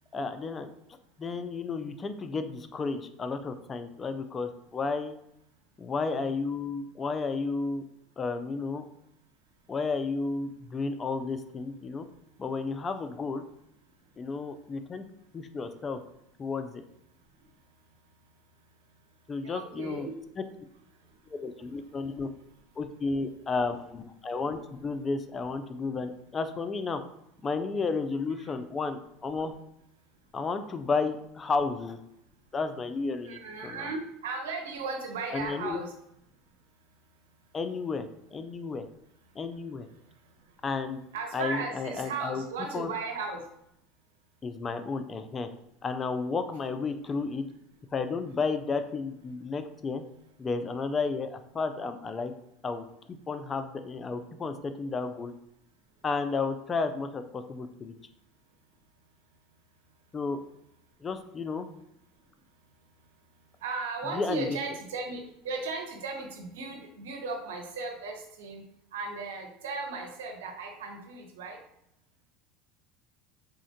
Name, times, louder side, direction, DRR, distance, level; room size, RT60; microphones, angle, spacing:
voice 1, 0.1-0.7 1.2-5.2 5.8-7.8 8.2-8.9 9.7-12.1 12.4-13.4 14.2-15.0 15.3-16.0 16.4-16.8 19.3-20.1 21.3-22.3 22.8-27.0 27.4-29.5 30.3-32.0 32.5-33.9 35.3-35.8 37.5-38.8 39.4-39.9 40.6-41.0 41.3-42.4 42.7-42.9 44.4-45.5 45.8-47.4 47.9-50.0 50.4-52.3 52.6-55.3 56.0-57.9 60.1-60.4 61.0-61.7 64.1-64.6, left 4 dB, 30° left, 9 dB, 0.3 m, -32 dB
voice 2, 19.4-20.1 21.0-21.1 33.2-35.9 39.9-40.3 41.1-43.4 63.6-68.6 68.9-71.6, right 4 dB, 85° right, 3 dB, 0.6 m, -36 dB
3.6 x 2.1 x 2.6 m, 0.79 s
hypercardioid pair, 90°, 0 cm